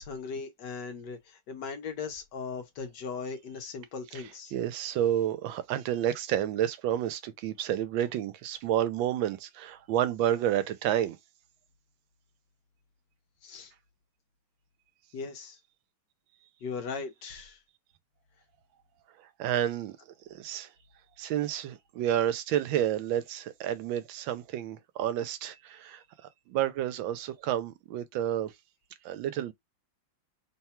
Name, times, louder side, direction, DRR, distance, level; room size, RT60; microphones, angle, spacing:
voice 1, 0.0-4.5 13.4-13.7 15.1-15.6 16.6-17.6, left 5 dB, 65° left, 1.4 m, -38 dB
voice 2, 4.5-11.2 19.4-20.0 20.3-20.7 21.2-26.0 26.5-28.5 29.0-29.5, right 11 dB, 80° right, 1.3 m, -30 dB
3.5 x 2.3 x 4.3 m
omnidirectional pair, 2.1 m